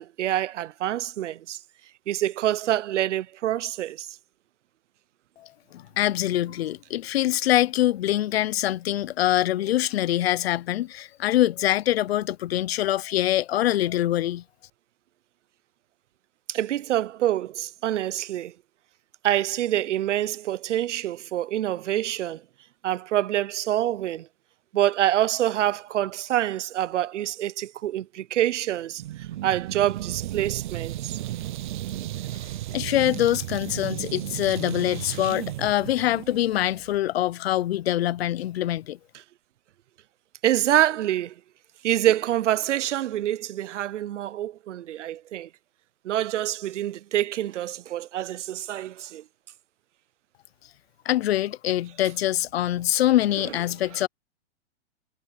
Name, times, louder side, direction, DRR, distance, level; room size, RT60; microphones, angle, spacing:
voice 1, 0.0-1.6 2.1-4.1 16.5-18.5 19.2-22.4 22.8-24.3 24.7-31.2 40.4-41.3 41.8-45.5 46.0-49.2, right 12 dB, 85° right, 0.8 m, -26 dB
voice 2, 5.4-14.4 32.7-39.0 51.0-54.1, left 13 dB, 60° left, 0.7 m, -24 dB
sound 1, 29.0-37.0, right 14 dB, 45° right, 0.5 m, -34 dB
hypercardioid pair, 165°, 35 cm